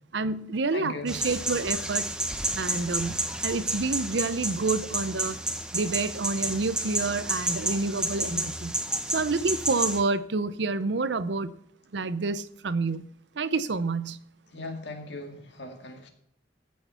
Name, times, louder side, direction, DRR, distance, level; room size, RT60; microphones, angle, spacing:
voice 1, 0.1-2.1 2.5-5.4 5.7-8.7 9.1-11.6 11.9-13.1 13.4-14.2, right 3 dB, 65° right, 0.7 m, -28 dB
voice 2, 0.7-1.1 8.3-8.5 14.5-16.1, left 2 dB, 65° left, 2.2 m, -38 dB
sound 1, 1.1-10.0, right 1 dB, 5° right, 0.9 m, -31 dB
15.0 x 6.5 x 5.7 m
head